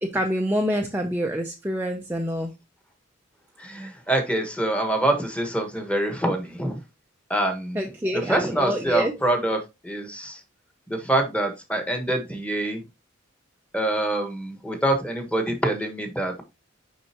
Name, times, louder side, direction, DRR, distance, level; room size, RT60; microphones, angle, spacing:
voice 1, 0.0-2.5 7.7-9.2, equal, 10° right, 0.6 m, -26 dB
voice 2, 3.6-6.8 7.3-7.8 8.3-10.4 10.9-12.8 13.7-16.4, right 1 dB, 5° left, 1.3 m, -25 dB
6.5 x 5.4 x 2.9 m
head